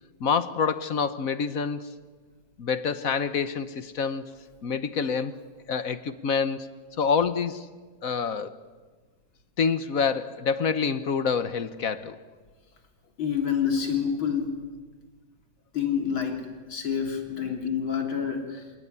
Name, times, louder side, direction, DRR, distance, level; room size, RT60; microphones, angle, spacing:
voice 1, 0.2-1.9 2.6-4.3 4.6-5.4 5.7-6.7 7.0-7.7 8.0-8.6 9.6-12.2, left 6 dB, 50° left, 1.2 m, -27 dB
voice 2, 13.2-14.5 15.7-16.4 16.7-18.6, left 7 dB, 90° left, 4.1 m, -27 dB
28.0 x 17.5 x 9.6 m
omnidirectional pair, 2.1 m